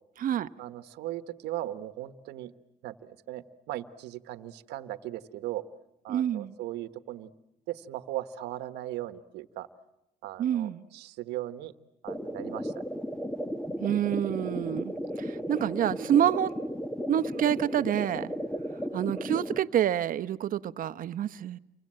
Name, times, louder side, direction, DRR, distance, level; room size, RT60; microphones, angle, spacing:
voice 1, 0.6-2.5 2.8-5.6 6.0-7.3 7.7-9.7 10.2-11.7 12.0-12.7, right 14 dB, 85° right, 1.3 m, -38 dB
voice 2, 6.1-6.5 10.4-10.8 13.8-16.6 17.1-18.3 18.9-21.6, right 10 dB, 55° right, 1.0 m, -27 dB
sound 1, 12.1-19.6, equal, 5° left, 1.3 m, -35 dB
29.5 x 24.5 x 7.7 m
cardioid pair, 110°, 17 cm